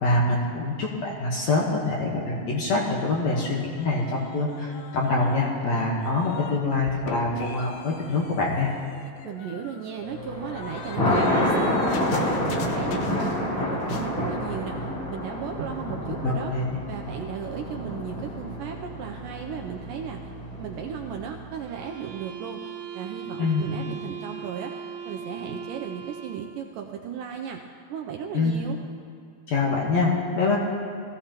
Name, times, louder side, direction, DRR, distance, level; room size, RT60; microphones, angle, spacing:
voice 1, 0.0-8.7 16.2-16.6 23.4-23.6 28.3-28.5 29.5-30.6, left 3 dB, 60° left, -3 dB, 2.0 m, -25 dB
sound 1, 2.9-6.6 6.9-13.6 13.8-14.1, left 6 dB, 85° left, 1.7 m, -43 dB
voice 2, 9.2-14.8 15.1-16.5 16.9-20.2 20.6-27.6 27.9-28.8, right 7 dB, 80° right, 2 dB, 2.0 m, -36 dB
Thunder, 10.1-21.5, left 1 dB, 40° left, 2.2 m, -28 dB
sound 2, 21.6-26.6, right 7 dB, 55° right, 2.1 m, -39 dB
19.5 x 15.0 x 2.9 m, 2.3 s
omnidirectional pair, 4.3 m